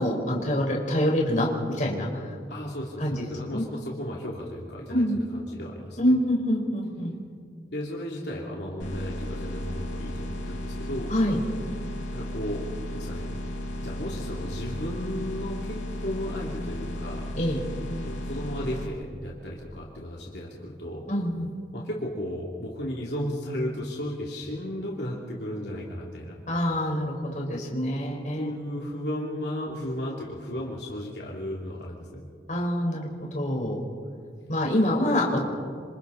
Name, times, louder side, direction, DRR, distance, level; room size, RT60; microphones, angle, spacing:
voice 1, 0.0-2.2 3.0-3.3 3.5-3.6 4.9-5.2 6.0-7.1 11.1-11.4 17.3-17.6 21.1-21.5 26.5-28.5 32.5-33.8 34.5-35.4, equal, 40° left, -1 dB, 4.3 m, -26 dB
voice 2, 2.5-6.1 7.7-11.1 12.1-12.6 12.9-13.3 13.8-17.2 18.0-21.1 21.7-26.3 28.3-32.2, equal, 70° left, -3 dB, 2.9 m, -34 dB
sound 1, 8.8-18.8, left 1 dB, 85° left, 6.1 m, -34 dB
27.0 x 26.5 x 4.1 m, 2.1 s
head